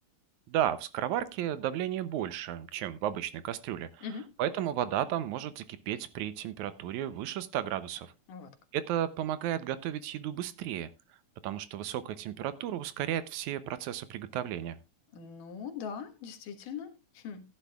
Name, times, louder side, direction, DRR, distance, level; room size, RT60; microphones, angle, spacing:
voice 1, 0.5-8.1 8.7-10.9 11.4-14.8, right 11 dB, 75° right, 2.0 m, -33 dB
voice 2, 15.1-17.4, left 6 dB, 85° left, 3.0 m, -41 dB
15.5 x 10.5 x 2.3 m
omnidirectional pair, 3.6 m